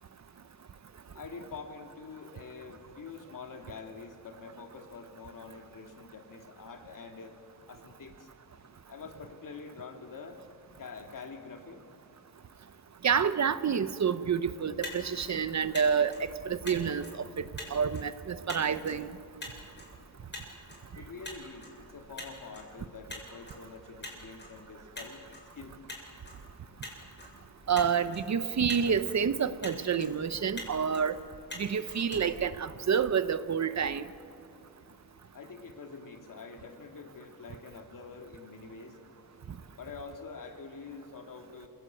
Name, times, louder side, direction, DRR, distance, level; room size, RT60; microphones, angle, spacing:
voice 1, 1.1-7.4 7.7-8.3 8.9-10.4 10.8-11.9 20.9-25.2 25.5-25.8 35.3-39.0 39.7-41.7, left 4 dB, 60° left, 4 dB, 2.6 m, -46 dB
voice 2, 13.0-19.1 27.7-31.2 31.6-34.1, right 7 dB, 50° right, 13 dB, 0.9 m, -28 dB
Motor vehicle (road), 14.6-33.2, left 1 dB, 30° left, 6.9 m, -47 dB
27.5 x 18.0 x 9.1 m, 2.6 s
wide cardioid pair, 125°, 36 cm